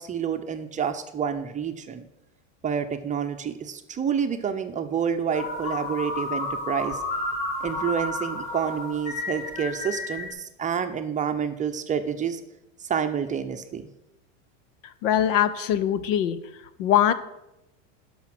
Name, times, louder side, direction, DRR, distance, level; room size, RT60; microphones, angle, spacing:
voice 1, 0.0-2.0 2.6-7.0 7.6-12.4 12.9-13.8, right 7 dB, 20° right, 7 dB, 0.7 m, -28 dB
sound 1, 5.3-10.3, left 2 dB, 55° left, 2.9 m, -31 dB
voice 2, 15.0-16.4 16.8-17.1, left 10 dB, 75° left, 15 dB, 1.0 m, -22 dB
12.0 x 5.6 x 6.0 m, 0.90 s
supercardioid pair, 130°, 39 cm